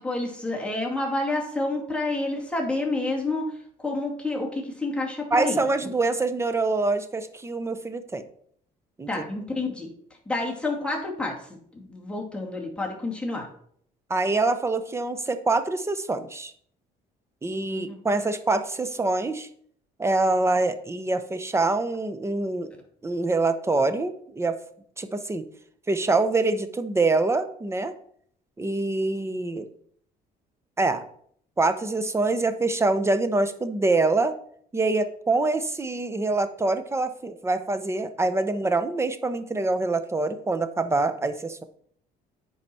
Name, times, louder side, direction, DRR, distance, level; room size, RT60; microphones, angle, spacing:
voice 1, 0.0-3.5 3.8-5.6 9.1-9.9 10.3-13.5 17.7-18.0, left 2 dB, 5° left, -1 dB, 2.2 m, -29 dB
voice 2, 5.3-8.2 9.0-9.1 14.1-16.5 17.4-19.5 20.0-22.7 23.0-24.6 25.0-25.5 25.9-27.9 28.6-29.7 30.8-31.0 31.6-34.3 34.7-41.6, right 3 dB, 15° right, 10 dB, 0.8 m, -25 dB
9.9 x 4.8 x 4.3 m, 0.62 s
cardioid pair, 110°, 17 cm